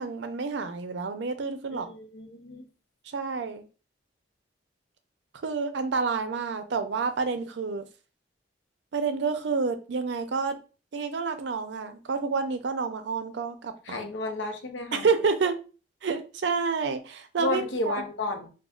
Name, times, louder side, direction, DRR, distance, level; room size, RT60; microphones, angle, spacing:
voice 1, 0.0-1.9 3.1-3.6 5.4-7.8 8.9-10.6 10.9-14.0 14.9-15.6 16.0-18.0, right 5 dB, 70° right, 9 dB, 0.5 m, -29 dB
voice 2, 1.7-2.7 13.8-15.1 17.4-18.5, left 2 dB, 80° left, 4 dB, 0.7 m, -32 dB
4.9 x 2.3 x 2.3 m, 0.35 s
head